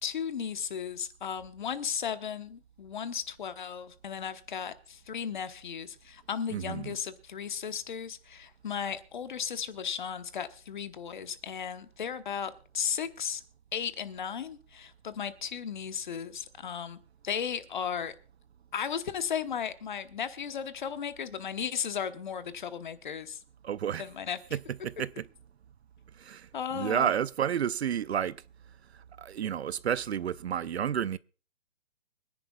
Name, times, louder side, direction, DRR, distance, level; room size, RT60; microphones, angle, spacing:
voice 1, 0.0-13.4 13.7-17.0 17.2-18.1 18.7-23.4 24.0-24.6 26.5-27.1, left 7 dB, 40° left, 1.1 m, -35 dB
voice 2, 6.5-6.9 23.6-24.0 24.5-24.6 24.8-25.2 26.2-26.5 26.7-28.4 29.2-31.2, right 9 dB, 60° right, 0.5 m, -30 dB
24.5 x 10.5 x 2.3 m
hypercardioid pair, 170°, 37 cm